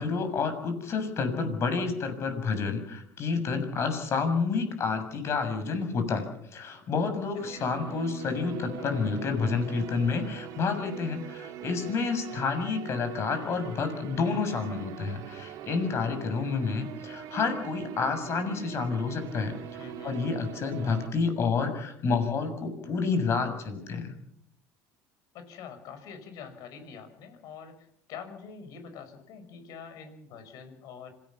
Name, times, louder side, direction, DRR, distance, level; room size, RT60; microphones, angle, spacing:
voice 1, 0.0-6.3 6.5-24.1, left 4 dB, 40° left, 8 dB, 6.8 m, -29 dB
sound 1, 7.3-21.1, right 10 dB, 65° right, 2.3 m, -42 dB
voice 2, 7.4-7.8 12.3-12.6 19.8-20.2 25.3-31.1, left 6 dB, 65° left, 9 dB, 5.7 m, -45 dB
26.0 x 17.5 x 7.2 m, 0.73 s
cardioid pair, 120°, 7 cm